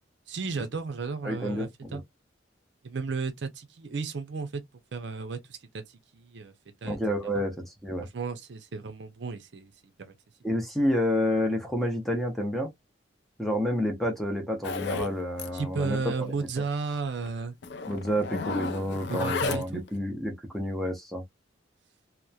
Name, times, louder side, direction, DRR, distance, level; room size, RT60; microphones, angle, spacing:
voice 1, 0.3-2.0 2.8-4.6 4.9-6.5 6.8-7.0 7.3-7.5 8.1-10.1 15.5-17.6 19.1-19.8, right 4 dB, 60° right, 0.5 m, -34 dB
voice 2, 1.2-2.0 6.8-8.1 10.4-12.7 13.4-16.3 17.9-21.2, equal, ahead, 0.6 m, -29 dB
Zipper (clothing), 14.6-15.1 15.4-15.6 15.9-16.0 16.4-16.5 17.2-17.3 17.6-19.9, left 5 dB, 60° left, 0.4 m, -33 dB
2.9 x 2.1 x 2.3 m
head